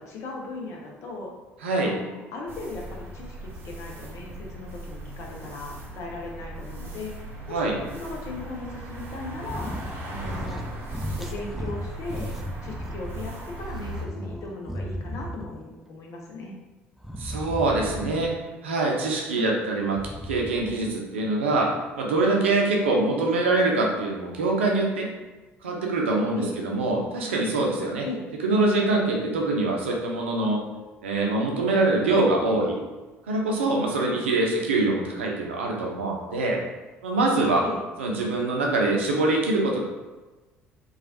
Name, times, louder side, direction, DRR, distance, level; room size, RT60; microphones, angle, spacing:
voice 1, 0.0-1.3 1.8-9.8 10.1-10.6 11.1-12.3 12.6-16.5 19.3-19.7 26.3-26.6 28.0-28.3 34.0-34.2 37.6-37.8, left 3 dB, 50° left, -1 dB, 0.7 m, -37 dB
voice 2, 1.6-1.9 7.5-7.7 17.2-18.3 18.6-25.1 25.6-28.1 28.4-30.6 31.0-32.8 33.3-36.6 37.0-37.6 38.0-39.8, right 2 dB, 75° right, -1 dB, 0.5 m, -24 dB
sound 1, 2.5-14.0, right 1 dB, 35° right, 0.7 m, -38 dB
sound 2, 9.4-9.9 10.2-10.6 10.9-13.3 13.7-15.6 17.0-18.4 19.8-20.9, equal, 5° right, 0.3 m, -35 dB
3.1 x 2.3 x 2.7 m, 1.2 s
figure-of-eight pair, 55°, 7 cm